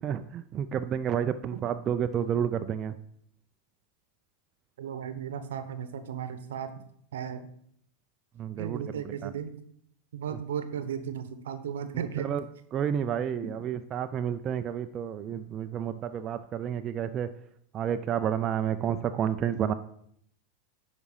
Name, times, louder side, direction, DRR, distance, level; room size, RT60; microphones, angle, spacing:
voice 1, 0.0-2.9 8.4-8.8 9.2-9.3 10.3-10.4 12.2-12.4 12.7-17.3 17.7-19.7, right 9 dB, 35° right, 8 dB, 0.4 m, -30 dB
voice 2, 4.8-6.7 7.1-7.5 8.6-9.5 10.1-12.3, right 8 dB, 70° right, 11 dB, 0.9 m, -35 dB
9.9 x 4.9 x 4.8 m, 0.69 s
hypercardioid pair, 90°, 0 cm